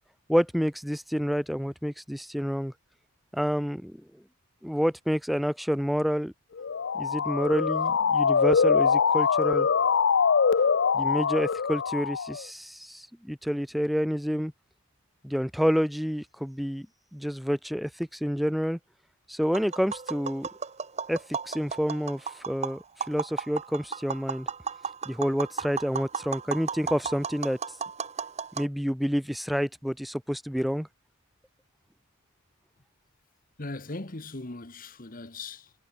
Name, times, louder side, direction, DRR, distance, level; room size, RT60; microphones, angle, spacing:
voice 1, 0.3-2.7 3.3-4.0 4.6-6.3 6.9-9.7 10.9-14.5 15.2-16.9 17.1-18.8 19.3-20.5 21.1-24.5 25.1-27.6 28.6-30.9, equal, ahead, 0.3 m, -28 dB
Motor vehicle (road) / Siren, 6.6-12.4, left 6 dB, 55° left, 0.5 m, -23 dB
Tap, 19.4-28.7, right 6 dB, 30° right, 0.9 m, -35 dB
voice 2, 33.6-35.7, left 2 dB, 40° left, 1.4 m, -39 dB
head